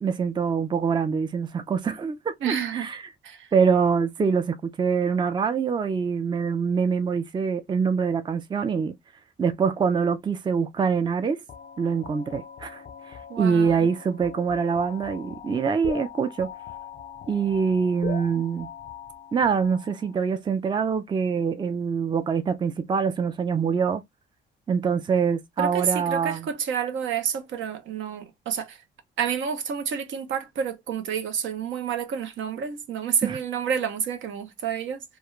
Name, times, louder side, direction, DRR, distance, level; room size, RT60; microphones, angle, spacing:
voice 1, 0.0-3.0 3.5-8.9 9.4-11.4 11.8-12.8 13.1-16.5 17.3-18.7 19.3-24.0 24.7-26.5 33.2-33.4, right 6 dB, 25° right, 0.4 m, -24 dB
voice 2, 2.4-2.9 3.2-3.5 13.3-13.9 25.6-28.8 29.2-35.0, right 7 dB, 75° right, 0.6 m, -29 dB
sound 1, 11.5-20.2, left 7 dB, 45° left, 0.4 m, -41 dB
2.4 x 2.2 x 2.9 m
cardioid pair, 90°, 20 cm